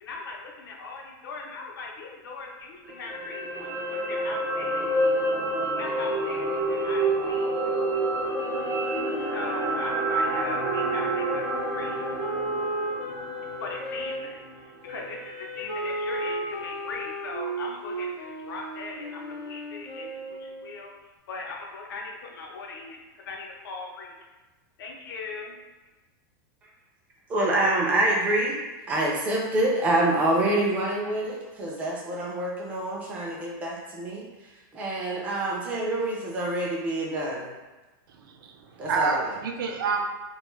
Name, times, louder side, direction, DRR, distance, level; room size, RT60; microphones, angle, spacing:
voice 1, 0.0-4.9 5.7-7.7 9.3-12.1 13.6-20.9 21.3-24.2 24.8-25.6, left 3 dB, 85° left, 0 dB, 0.6 m, -39 dB
sound 1, 2.8-15.2 15.5-15.7, right 1 dB, 55° right, 0.8 m, -28 dB
Wind instrument woodwind instrument, 8.3-14.2 14.8-20.7, right 2 dB, 40° left, 0.5 m, -34 dB
voice 2, 27.3-28.6 28.9-34.3 34.7-37.5 38.8-39.2, right 1 dB, 15° right, -2 dB, 0.3 m, -26 dB
voice 3, 38.1-40.0, right 4 dB, 80° right, 3 dB, 0.4 m, -28 dB
2.4 x 2.2 x 3.0 m, 1.2 s
supercardioid pair, 175°, 11 cm